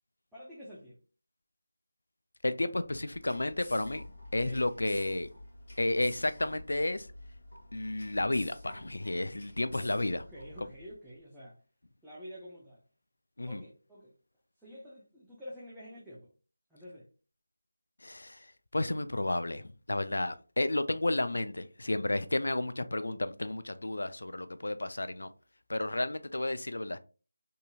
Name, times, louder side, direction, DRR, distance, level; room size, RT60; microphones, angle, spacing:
voice 1, 0.3-1.0 4.4-4.7 9.7-11.6 12.0-12.8 13.5-14.1 14.6-16.3 16.7-17.1, equal, ahead, 0.4 m, -48 dB
voice 2, 2.4-4.1 4.3-5.3 5.8-7.1 7.7-10.2 13.4-13.6 18.0-18.5 18.7-25.3 25.7-27.0, left 2 dB, 75° left, 0.3 m, -32 dB
sound 1, 2.8-11.0, left 1 dB, 45° left, 1.3 m, -49 dB
2.7 x 2.7 x 2.2 m
figure-of-eight pair, 170°, 0 cm